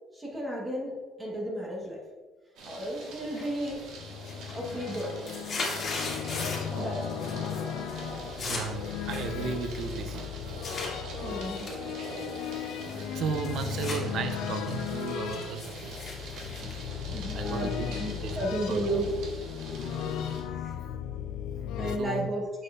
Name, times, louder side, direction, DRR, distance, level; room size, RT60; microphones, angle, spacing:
voice 1, 0.1-2.1 2.6-3.9 4.5-5.2 6.7-7.3 11.2-11.7 15.4-15.5 16.6-16.8 17.1-19.1 20.5-20.8 21.8-22.5, right 1 dB, 15° right, -2 dB, 1.1 m, -34 dB
sound 1, 2.6-20.4, right 2 dB, 80° right, 1.4 m, -43 dB
sound 2, 3.4-3.8 4.1-6.8 7.1-7.6 7.9-10.9 11.4-14.0 14.4-17.5, left 3 dB, 35° left, 1.8 m, -39 dB
sound 3, 3.7-22.0, left 9 dB, 75° left, 0.3 m, -36 dB
voice 2, 8.2-11.6 13.1-16.0 17.0-17.9 18.2-18.4 18.7-18.8 22.0-22.3, right 5 dB, 55° right, 8 dB, 0.5 m, -35 dB
6.7 x 6.4 x 2.4 m, 1.3 s
cardioid pair, 155°, 0 cm